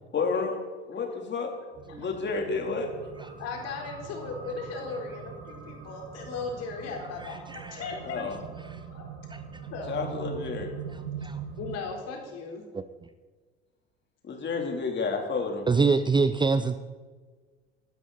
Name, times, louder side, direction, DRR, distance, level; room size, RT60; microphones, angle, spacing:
voice 1, 0.1-0.6 0.8-1.5 2.0-2.9 8.0-8.4 9.9-10.7 14.2-15.7, left 4 dB, 35° left, 2 dB, 3.6 m, -30 dB
sound 1, 1.7-11.8, right 7 dB, 45° right, 4.3 m, -42 dB
voice 2, 3.4-8.2 8.9-9.1 9.7-10.0 11.6-12.6, left 4 dB, 50° left, 1 dB, 4.2 m, -37 dB
voice 3, 15.7-16.8, right 4 dB, 15° right, 11 dB, 0.7 m, -24 dB
21.5 x 12.5 x 4.2 m, 1.4 s
figure-of-eight pair, 70°, 32 cm